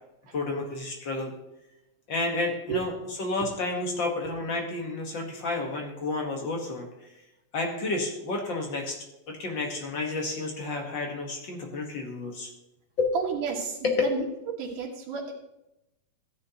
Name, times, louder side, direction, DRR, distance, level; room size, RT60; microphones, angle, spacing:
voice 1, 0.3-1.3 2.1-2.9 3.2-6.9 7.5-9.0 9.3-12.5 13.0-13.1 13.8-13.9, left 3 dB, 50° left, 2 dB, 1.5 m, -30 dB
voice 2, 13.1-15.3, right 5 dB, 90° right, -2 dB, 3.0 m, -31 dB
14.5 x 9.7 x 2.9 m, 0.91 s
omnidirectional pair, 3.5 m